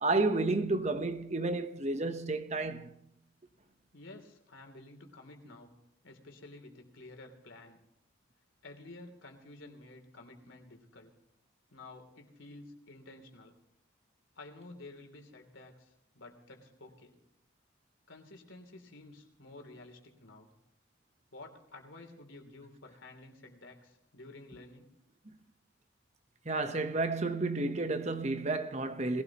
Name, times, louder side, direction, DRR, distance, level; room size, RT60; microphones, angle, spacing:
voice 1, 0.0-2.9 26.4-29.2, right 2 dB, 35° right, 1.0 m, -31 dB
voice 2, 3.9-5.7 6.0-7.8 8.6-11.1 11.7-13.5 14.3-17.2 18.1-20.5 21.3-24.9, left 2 dB, 85° left, 3.1 m, -51 dB
21.5 x 17.0 x 3.0 m
head